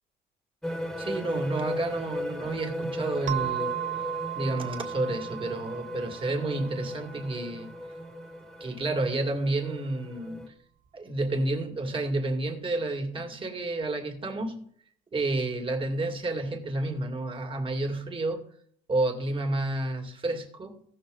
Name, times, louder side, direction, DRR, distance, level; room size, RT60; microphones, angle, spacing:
sound 1, 0.6-10.5, left 1 dB, ahead, 1.5 m, -37 dB
voice 1, 1.0-3.7 4.4-7.7 8.6-10.5 10.9-14.7 15.1-18.4 18.9-20.8, right 2 dB, 30° right, 2.2 m, -30 dB
sound 2, 3.3-7.7, right 15 dB, 50° right, 0.4 m, -36 dB
16.5 x 6.6 x 3.9 m
cardioid pair, 110°, 17 cm